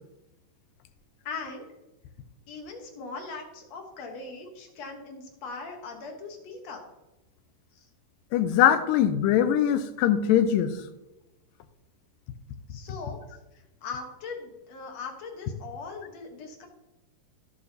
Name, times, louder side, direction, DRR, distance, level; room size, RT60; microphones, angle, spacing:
voice 1, 1.3-1.7 2.5-6.8 7.8-7.9 12.7-13.2 13.5-16.7, left 4 dB, 60° left, 3 dB, 2.1 m, -40 dB
voice 2, 8.3-10.7, left 10 dB, 85° left, 10 dB, 2.3 m, -22 dB
15.5 x 7.2 x 2.8 m, 0.99 s
omnidirectional pair, 3.8 m